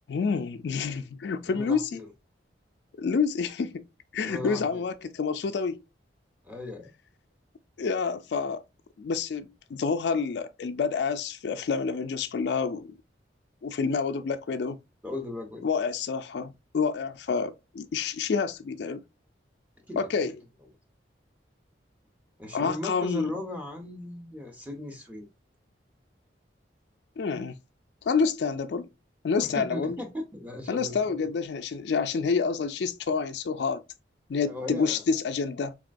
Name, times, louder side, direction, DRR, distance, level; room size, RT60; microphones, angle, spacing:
voice 1, 0.1-2.0 3.0-3.9 4.1-5.8 7.8-8.6 9.0-12.9 13.6-14.8 15.6-19.0 20.0-20.3 22.5-23.3 27.2-27.6 28.0-28.9 29.2-30.0 30.7-33.8 34.3-35.7, left 5 dB, 70° left, 0.4 m, -28 dB
voice 2, 1.5-2.1 4.2-4.8 6.4-6.9 15.0-15.6 19.9-20.1 22.4-25.3 29.4-31.3 34.4-35.0, left 2 dB, 10° right, 0.8 m, -37 dB
4.1 x 2.9 x 2.5 m
head